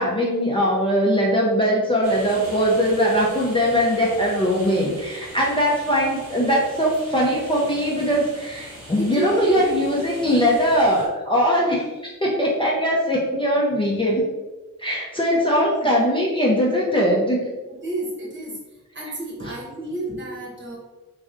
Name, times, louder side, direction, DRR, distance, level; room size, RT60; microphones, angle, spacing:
voice 1, 0.0-11.9 12.2-14.2 14.8-17.4 19.4-19.6, equal, 15° left, -5 dB, 0.5 m, -21 dB
sound 1, 2.0-11.1, right 1 dB, 80° right, 1.1 m, -41 dB
voice 2, 8.9-9.6 15.3-15.9 17.8-18.6 18.9-20.8, right 2 dB, 35° right, -4 dB, 1.0 m, -30 dB
3.1 x 2.5 x 2.5 m, 1.2 s
cardioid pair, 70°, 34 cm